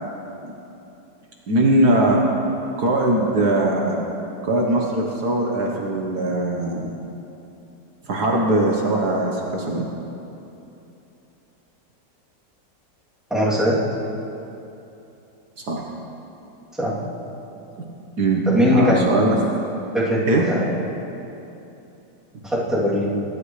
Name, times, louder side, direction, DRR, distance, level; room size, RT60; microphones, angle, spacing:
voice 1, 1.5-2.2 2.8-4.0 4.4-6.9 8.1-9.9 15.7-15.8 18.2-18.4 18.7-19.4 20.3-20.4, right 1 dB, 60° right, -1 dB, 1.7 m, -20 dB
voice 2, 13.3-13.8 16.8-17.0 18.5-18.9 19.9-20.7 22.4-23.1, equal, ahead, -9 dB, 2.8 m, -20 dB
23.0 x 11.5 x 3.3 m, 2.9 s
omnidirectional pair, 2.0 m